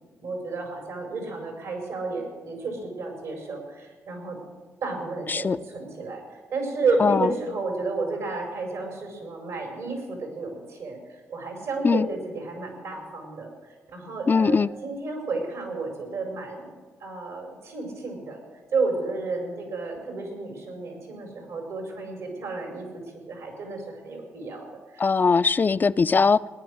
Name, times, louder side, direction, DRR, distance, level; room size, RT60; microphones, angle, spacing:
voice 1, 0.2-4.4 4.8-13.5 13.9-18.4 18.7-23.0 23.3-25.0, right 3 dB, 80° right, 4.9 m, -32 dB
voice 2, 14.3-14.7 25.0-26.4, left 5 dB, 35° left, 0.4 m, -20 dB
18.0 x 10.5 x 6.4 m
cardioid pair, 70°, 6 cm